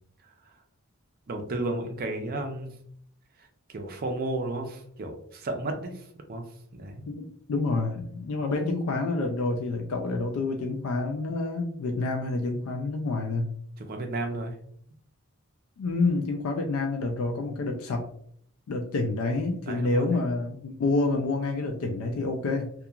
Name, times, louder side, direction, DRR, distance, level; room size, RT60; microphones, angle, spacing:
voice 1, 1.3-2.7 3.4-6.5 6.7-7.0 13.8-14.5 19.7-20.2, right 2 dB, 45° right, 4 dB, 0.4 m, -33 dB
voice 2, 7.1-13.6 15.8-18.1 18.7-22.7, left 3 dB, 70° left, 3 dB, 0.3 m, -28 dB
2.8 x 2.3 x 2.3 m, 0.64 s
head